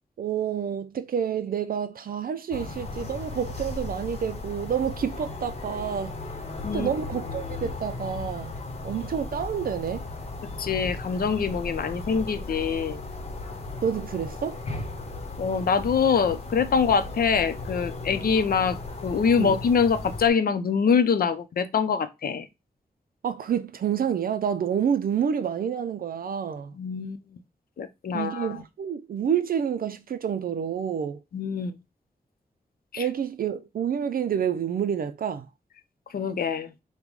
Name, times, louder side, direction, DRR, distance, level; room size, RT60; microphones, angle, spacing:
voice 1, 0.2-6.1 6.7-8.5 8.8-10.0 13.8-14.6 19.4-19.6 23.2-26.7 28.1-31.2 33.0-35.5, right 8 dB, 70° right, 0.4 m, -28 dB
sound 1, 2.5-20.3, left 3 dB, 40° left, 0.9 m, -36 dB
voice 2, 10.6-13.0 15.4-22.5 26.7-27.2 27.8-28.6 31.3-31.7 32.9-33.0 36.1-36.7, left 6 dB, 70° left, 0.6 m, -24 dB
5.2 x 2.2 x 4.6 m
wide cardioid pair, 140°, 16 cm